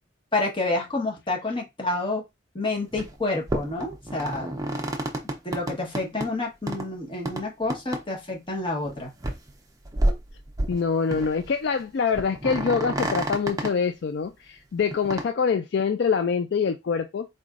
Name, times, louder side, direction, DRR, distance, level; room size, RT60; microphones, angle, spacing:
voice 1, 0.3-2.2 2.5-4.5 5.4-9.1, left 2 dB, 25° left, 1.2 m, -29 dB
sound 1, 2.9-3.1 3.5-6.3 6.7-6.9 7.2-7.4 7.7-8.0 8.3-8.4 8.8-8.9 9.2-9.5 9.8-10.8 11.1-11.5 11.8-11.9 12.1-13.7 14.9-15.2, right 1 dB, 20° right, 0.6 m, -29 dB
voice 2, 10.7-17.3, left 5 dB, 60° left, 0.3 m, -25 dB
4.3 x 3.1 x 2.5 m
head